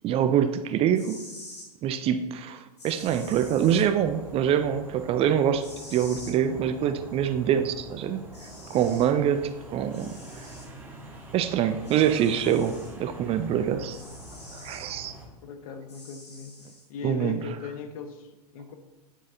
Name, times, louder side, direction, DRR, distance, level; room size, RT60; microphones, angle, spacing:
voice 1, 0.0-1.2 1.8-5.6 5.9-8.2 8.7-10.2 11.3-14.0 14.5-15.2 17.0-17.4, right 9 dB, 30° right, 10 dB, 0.5 m, -25 dB
sound 1, 0.9-1.7 2.8-3.9 5.6-6.4 7.8-7.9 8.3-9.1 9.9-10.7 11.8-12.9 13.9-14.9 15.9-16.9, left 2 dB, 80° left, 2.4 m, -46 dB
sound 2, 3.0-15.3, right 1 dB, 10° right, 1.7 m, -45 dB
voice 2, 15.4-16.6 16.9-18.7, left 5 dB, 60° left, 7 dB, 1.0 m, -38 dB
9.0 x 8.1 x 2.7 m, 1.1 s
figure-of-eight pair, 95°, 21 cm